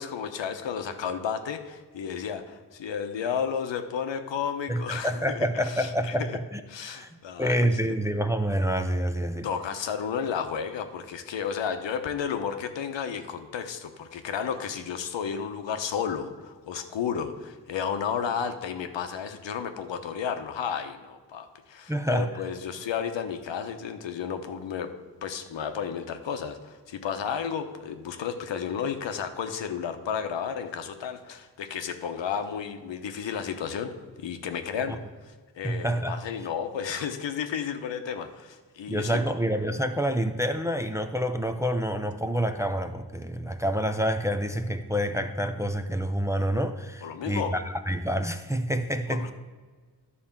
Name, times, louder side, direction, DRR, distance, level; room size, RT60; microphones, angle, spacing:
voice 1, 0.0-6.4 6.7-7.7 9.4-24.9 25.2-33.9 34.2-34.9 35.6-39.2 47.0-47.6 49.1-49.3, left 7 dB, 85° left, 1.0 m, -32 dB
voice 2, 4.7-6.3 6.5-7.1 7.4-9.5 21.9-22.3 34.9-35.0 35.6-36.2 38.9-49.3, equal, 5° right, 0.5 m, -27 dB
11.5 x 4.3 x 7.2 m
wide cardioid pair, 120°, 43 cm